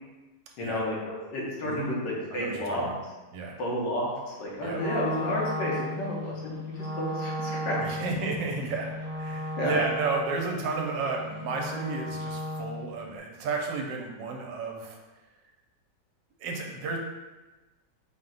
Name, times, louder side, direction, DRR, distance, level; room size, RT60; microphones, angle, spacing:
voice 1, 0.6-1.0 1.3-2.9 3.6-8.0 9.6-9.8, equal, 80° left, -4 dB, 1.6 m, -31 dB
voice 2, 1.6-2.0 2.3-3.0 3.3-3.5 4.6-4.8 7.5-15.0 16.4-17.0, right 4 dB, 90° right, 1 dB, 1.3 m, -32 dB
Wind instrument woodwind instrument, 4.7-12.9, equal, 60° left, 1.8 m, -35 dB
4.4 x 2.1 x 3.8 m, 1.1 s
omnidirectional pair, 2.0 m